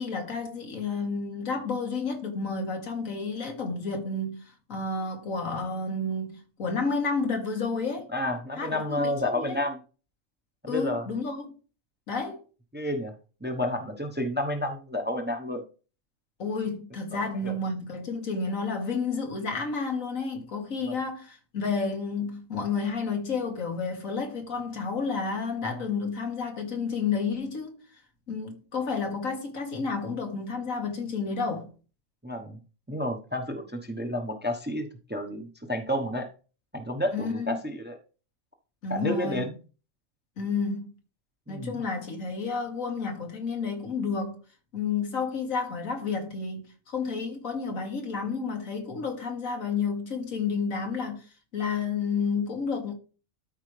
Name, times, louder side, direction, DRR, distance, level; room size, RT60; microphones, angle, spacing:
voice 1, 0.0-4.4 4.7-8.1 8.6-9.6 10.7-11.5 12.1-12.4 16.4-27.8 28.3-31.7 37.1-37.6 38.8-39.5 40.4-40.9 41.5-44.4 44.7-51.2 51.5-52.9, left 4 dB, 85° left, 2.1 m, -31 dB
voice 2, 8.1-9.8 10.6-11.0 12.7-13.1 13.4-15.6 17.1-17.5 20.8-21.0 32.2-32.6 32.9-36.3 36.7-38.0 38.9-39.6 41.5-41.9, left 1 dB, 10° right, 0.8 m, -30 dB
12.5 x 4.8 x 3.3 m
omnidirectional pair, 1.4 m